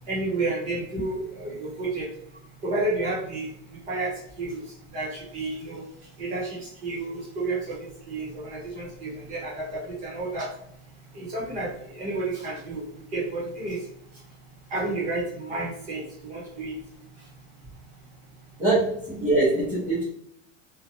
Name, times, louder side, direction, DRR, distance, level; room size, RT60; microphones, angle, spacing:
voice 1, 0.1-2.1 2.6-4.7 4.9-5.8 6.2-10.5 11.1-13.8 14.7-16.8, right 2 dB, 20° right, -5 dB, 0.8 m, -31 dB
voice 2, 18.6-20.0, right 2 dB, 5° right, -13 dB, 0.4 m, -23 dB
2.6 x 2.1 x 2.8 m, 0.71 s
supercardioid pair, 170°, 36 cm